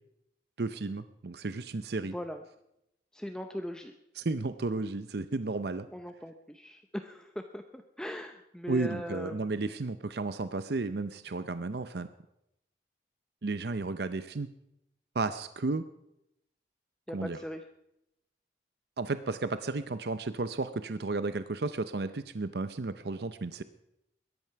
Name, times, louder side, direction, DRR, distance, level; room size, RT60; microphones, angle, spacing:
voice 1, 0.6-2.1 4.2-5.9 8.7-12.1 13.4-14.5 15.1-15.9 17.1-17.4 19.0-23.6, right 3 dB, 65° right, 12 dB, 0.6 m, -33 dB
voice 2, 2.1-2.4 3.1-3.9 5.9-9.5 17.1-17.6, equal, 5° left, 5 dB, 0.6 m, -40 dB
21.5 x 11.0 x 5.8 m, 0.83 s
head